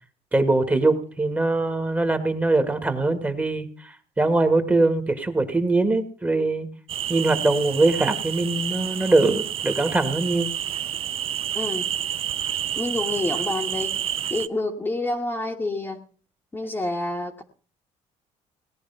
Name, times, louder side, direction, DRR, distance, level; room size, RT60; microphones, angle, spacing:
voice 1, 0.3-3.7 4.2-6.7 7.1-10.5, right 2 dB, 10° right, 8 dB, 1.7 m, -22 dB
sound 1, 6.9-14.5, right 10 dB, 45° right, 0.6 m, -29 dB
voice 2, 11.5-11.9 12.7-14.0 14.3-16.0 16.5-17.4, left 2 dB, 15° left, 2 dB, 1.4 m, -28 dB
18.5 x 10.0 x 5.6 m, 0.42 s
cardioid pair, 135°, 13 cm